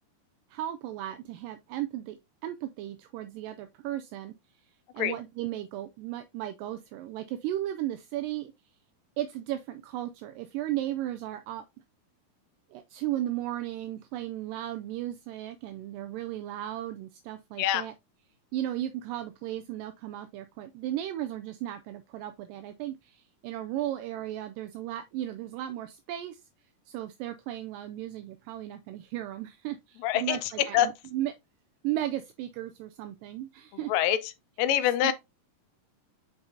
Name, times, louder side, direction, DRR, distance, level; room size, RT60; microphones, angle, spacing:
voice 1, 0.5-4.3 4.9-8.5 9.2-11.7 12.7-17.9 18.5-26.4 26.9-31.3 31.8-33.9 35.0-35.1, right 13 dB, 80° right, 2.1 m, -35 dB
voice 2, 30.0-30.9 33.9-34.2 34.6-35.1, left 12 dB, 80° left, 2.3 m, -25 dB
7.1 x 5.0 x 2.7 m
omnidirectional pair, 4.0 m